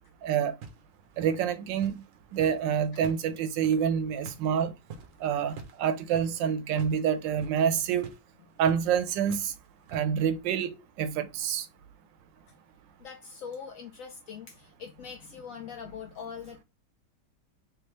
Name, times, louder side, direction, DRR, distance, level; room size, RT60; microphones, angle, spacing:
voice 1, 0.2-0.5 1.2-2.0 2.3-4.7 5.2-5.5 5.8-8.1 8.6-9.5 9.9-11.6, right 8 dB, 90° right, 1.3 m, -27 dB
sound 1, 0.6-2.6 2.9-7.0 7.3-7.6 8.0-8.2 8.6-8.9 9.3-10.0, right 5 dB, 60° right, 0.9 m, -47 dB
voice 2, 13.0-16.6, left 7 dB, 70° left, 0.8 m, -42 dB
3.4 x 3.0 x 3.1 m
omnidirectional pair, 1.9 m